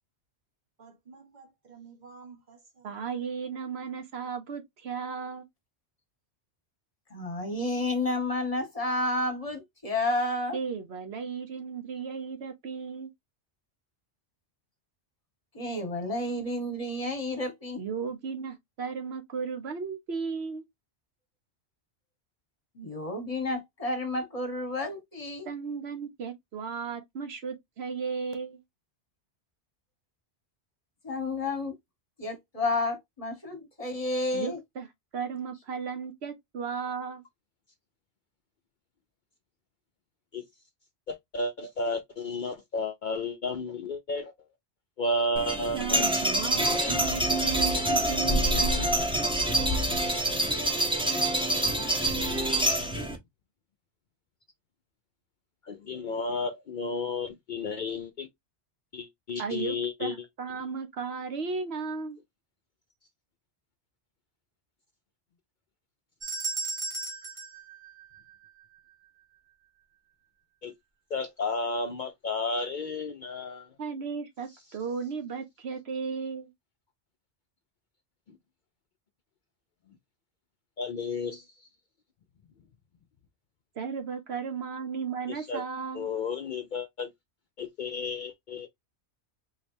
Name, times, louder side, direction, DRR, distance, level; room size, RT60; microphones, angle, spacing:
voice 1, 0.8-2.9, right 5 dB, 45° right, 0.9 m, -51 dB
voice 2, 2.8-5.4 10.5-13.1 17.8-20.6 25.4-28.6 34.3-34.9 35.1-37.2 45.7-48.9 59.4-62.2 73.8-76.5 83.8-86.1, right 5 dB, 70° right, 1.1 m, -35 dB
voice 3, 7.1-10.6 15.5-17.8 22.7-25.5 31.0-31.7 32.2-34.6, left 2 dB, 35° left, 1.2 m, -31 dB
voice 4, 41.1-44.3 45.0-46.1 46.7-47.0 55.6-58.3 58.9-60.2 70.6-70.7 71.1-73.7 78.3-78.4 80.8-81.7 85.3-85.6 85.9-87.1 87.6-88.7, left 2 dB, 55° left, 0.6 m, -32 dB
sound 1, 45.4-53.2, right 1 dB, 5° right, 0.7 m, -26 dB
sound 2, 66.2-68.6, right 3 dB, 30° right, 1.5 m, -36 dB
3.9 x 3.2 x 2.6 m
omnidirectional pair, 1.1 m